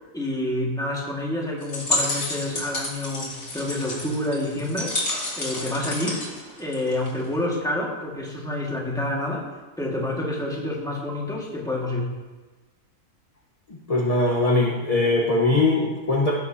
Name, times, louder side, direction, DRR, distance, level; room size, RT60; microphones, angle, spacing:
voice 1, 0.1-4.9 5.4-6.2 6.6-9.5 9.8-12.1, left 1 dB, 5° left, -3 dB, 1.8 m, -28 dB
sound 1, 1.6-7.2, left 2 dB, 75° left, 2.6 m, -30 dB
voice 2, 13.7-16.3, left 2 dB, 30° left, -3 dB, 1.2 m, -21 dB
17.0 x 7.2 x 2.8 m, 1.2 s
omnidirectional pair, 1.4 m